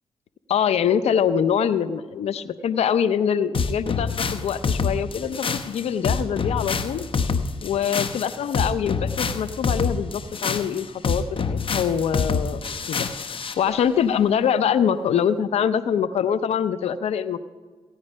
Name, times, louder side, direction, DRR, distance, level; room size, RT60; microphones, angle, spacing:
voice 1, 0.5-7.0 7.6-12.6 12.9-13.1 13.6-17.4, left 8 dB, 75° left, 14 dB, 0.6 m, -24 dB
sound 1, 3.5-13.6, left 5 dB, 55° left, 0.9 m, -26 dB
16.0 x 9.8 x 5.4 m, 1.4 s
supercardioid pair, 45°, 11 cm